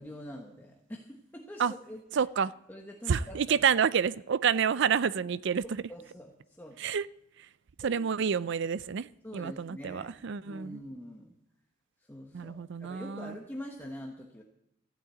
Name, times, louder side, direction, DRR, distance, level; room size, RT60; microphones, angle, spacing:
voice 1, 0.0-2.3 2.7-3.7 5.9-6.8 7.8-8.0 9.2-11.3 12.1-14.4, equal, 10° left, 1.2 m, -45 dB
voice 2, 2.1-2.5 3.1-5.8 6.8-7.1 7.8-10.8 12.3-13.4, right 7 dB, 65° right, 0.5 m, -29 dB
14.5 x 8.7 x 8.3 m
head